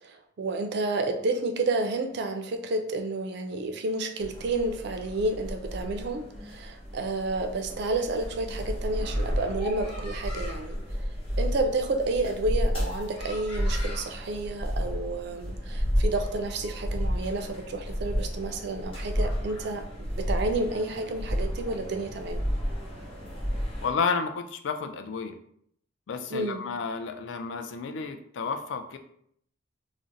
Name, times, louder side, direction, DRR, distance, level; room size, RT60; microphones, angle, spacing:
voice 1, 0.0-10.8 11.4-22.4 26.3-26.6, right 2 dB, 60° right, 7 dB, 0.4 m, -30 dB
sound 1, 4.2-23.9, equal, 30° left, 0.9 m, -32 dB
voice 2, 23.8-25.4 26.1-29.0, left 5 dB, 70° left, 7 dB, 0.4 m, -31 dB
2.5 x 2.1 x 3.8 m, 0.67 s
head